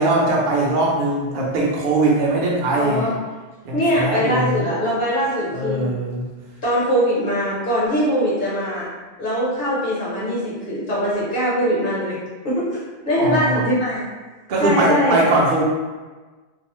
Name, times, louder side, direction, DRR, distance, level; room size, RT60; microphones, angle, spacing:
voice 1, 0.0-3.1 3.6-4.6 5.5-6.2 13.2-13.6 14.5-15.6, right 2 dB, 55° right, -4 dB, 0.7 m, -20 dB
voice 2, 2.7-3.1 3.7-5.9 6.6-8.9 9.2-12.2 12.4-12.8 13.1-14.1 14.6-15.2, equal, 55° left, -8 dB, 1.0 m, -21 dB
2.5 x 2.0 x 2.9 m, 1.3 s
omnidirectional pair, 1.1 m